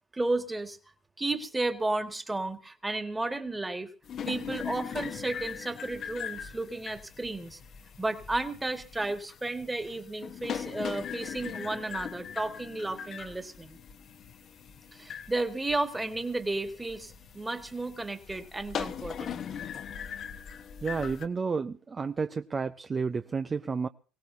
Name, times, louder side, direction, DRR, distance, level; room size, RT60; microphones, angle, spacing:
voice 1, 0.1-0.8 1.2-3.9 4.3-7.6 8.0-13.8 14.9-19.4, right 2 dB, 15° right, 7 dB, 1.9 m, -33 dB
sound 1, 4.0-21.3, left 8 dB, 50° left, 1.1 m, -40 dB
voice 2, 20.8-23.9, right 5 dB, 30° right, 9 dB, 0.6 m, -31 dB
22.5 x 17.0 x 2.8 m, 0.37 s
supercardioid pair, 80°, 0 cm